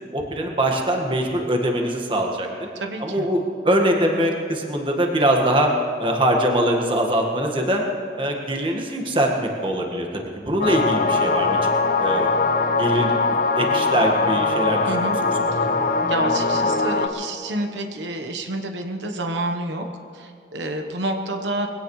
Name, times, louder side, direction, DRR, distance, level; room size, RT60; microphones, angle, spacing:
voice 1, 0.1-2.7 3.0-5.7 6.0-7.8 8.2-11.6 12.0-12.3 12.8-13.2 13.5-15.3, right 1 dB, 30° right, 1 dB, 1.7 m, -22 dB
voice 2, 2.7-3.3 14.9-15.2 15.5-15.7 16.1-19.9 20.1-21.7, right 1 dB, 85° right, 4 dB, 1.2 m, -28 dB
sound 1, 10.6-17.1, left 3 dB, 50° left, 0.8 m, -21 dB
22.0 x 17.0 x 3.2 m, 2.5 s
head